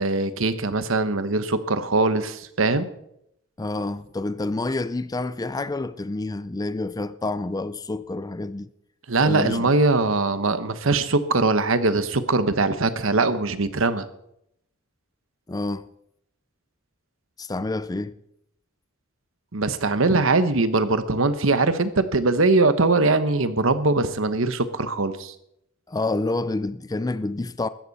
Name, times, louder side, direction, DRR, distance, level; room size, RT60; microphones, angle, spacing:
voice 1, 0.0-2.9 9.1-14.1 19.5-25.3, right 3 dB, 70° right, 1.1 m, -21 dB
voice 2, 3.6-8.7 9.2-9.7 15.5-15.9 17.4-18.2 25.9-27.7, left 2 dB, 20° left, 0.4 m, -28 dB
15.5 x 13.5 x 4.1 m
head